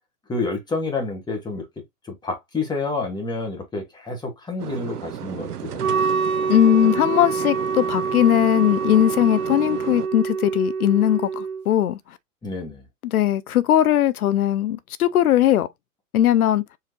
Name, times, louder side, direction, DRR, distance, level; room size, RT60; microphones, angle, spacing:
voice 1, 0.3-1.7 2.0-5.9 12.4-12.8, left 3 dB, 10° left, 1.5 m, -29 dB
sound 1, 4.6-10.1, right 9 dB, 90° right, 0.7 m, -34 dB
Wind instrument woodwind instrument, 5.8-11.6, right 5 dB, 65° right, 0.9 m, -26 dB
voice 2, 6.5-12.0 13.0-15.7 16.1-16.6, left 11 dB, 70° left, 0.6 m, -19 dB
4.6 x 3.2 x 2.9 m
hypercardioid pair, 120°, 45 cm